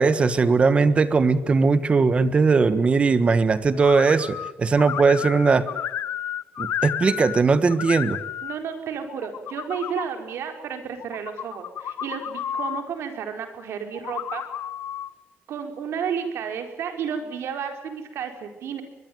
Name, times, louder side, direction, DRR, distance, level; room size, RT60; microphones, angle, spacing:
voice 1, 0.0-5.7 6.6-8.2, right 4 dB, 30° right, 14 dB, 1.4 m, -19 dB
sound 1, 3.8-4.5 4.8-7.4 7.7-8.5 9.1-10.1 11.0-12.8 13.9-15.1, left 10 dB, 65° left, 1.0 m, -32 dB
voice 2, 8.4-14.4 15.5-18.8, right 7 dB, 80° right, 6 dB, 4.5 m, -32 dB
22.5 x 22.0 x 9.4 m, 0.95 s
wide cardioid pair, 175°, 4 cm